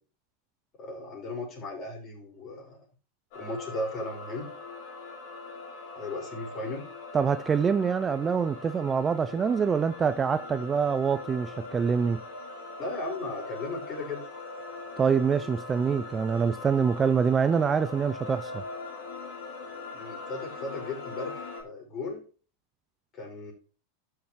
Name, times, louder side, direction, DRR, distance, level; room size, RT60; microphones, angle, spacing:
voice 1, 0.8-2.8 3.3-4.5 6.0-6.9 12.8-14.2 19.9-22.3 23.1-23.5, left 2 dB, 35° left, 5.8 m, -36 dB
sound 1, 3.3-21.6, left 3 dB, 55° left, 3.5 m, -41 dB
voice 2, 7.1-12.2 15.0-18.6, right 6 dB, 25° right, 0.4 m, -25 dB
12.5 x 6.6 x 3.0 m
hypercardioid pair, 100°, 0 cm